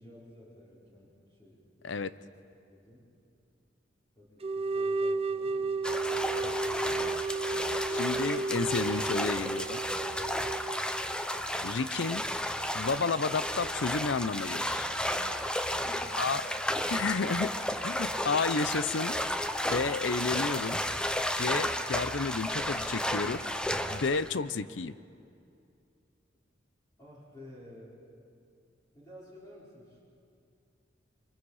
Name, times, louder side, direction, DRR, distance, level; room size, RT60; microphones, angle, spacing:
voice 1, 0.0-2.3 2.7-3.0 4.2-6.4 15.8-16.4 27.0-28.0 28.9-30.0, left 1 dB, 20° left, -8 dB, 4.6 m, -52 dB
sound 1, 4.4-11.2, right 3 dB, 35° right, 0.6 m, -33 dB
sound 2, 5.8-24.3, left 1 dB, 5° left, 0.7 m, -33 dB
voice 2, 7.9-9.8 11.6-12.2 12.7-14.9 16.2-16.4 16.9-17.5 17.8-19.2 19.7-20.8 21.4-23.4 23.9-24.9, left 4 dB, 80° left, 15 dB, 0.6 m, -31 dB
27.5 x 24.0 x 4.9 m, 2.5 s
head